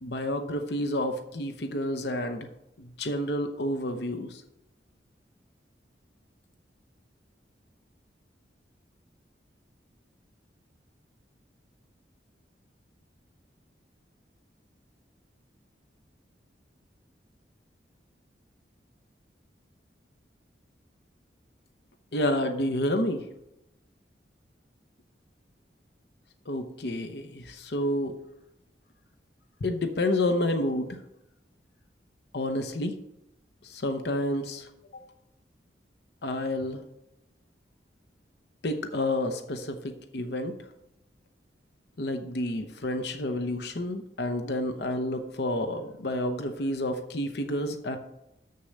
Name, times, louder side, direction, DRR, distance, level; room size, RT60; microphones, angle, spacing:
voice 1, 0.0-2.5 2.8-4.4 22.1-23.3 26.5-28.2 29.6-31.0 32.3-33.0 33.6-35.0 36.2-36.8 38.6-40.5 42.0-48.0, left 1 dB, 65° left, 7 dB, 0.8 m, -30 dB
7.0 x 6.6 x 6.5 m, 0.85 s
head